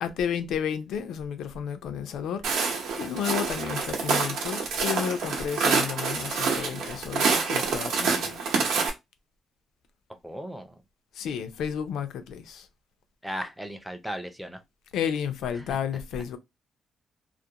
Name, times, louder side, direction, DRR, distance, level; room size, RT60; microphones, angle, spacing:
voice 1, 0.0-2.4 3.0-8.4 11.1-12.7 14.9-16.4, left 8 dB, 80° left, 0.4 m, -32 dB
Walk footsteps, 2.4-8.9, right 5 dB, 85° right, 0.7 m, -27 dB
voice 2, 10.2-10.8 13.2-14.6 15.5-15.8, equal, ahead, 0.4 m, -36 dB
2.4 x 2.1 x 2.7 m
cardioid pair, 170°, 0 cm